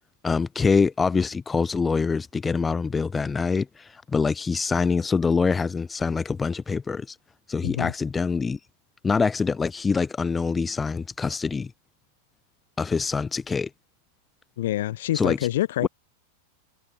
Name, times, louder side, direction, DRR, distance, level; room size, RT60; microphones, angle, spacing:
voice 1, 0.2-7.2 7.5-8.6 9.0-11.7 12.8-13.7 15.1-15.4 15.8-15.9, left 5 dB, 15° left, 0.4 m, -25 dB
voice 2, 7.6-7.9 14.6-15.9, left 14 dB, 55° left, 1.1 m, -26 dB
figure-of-eight pair, 90°, 0 cm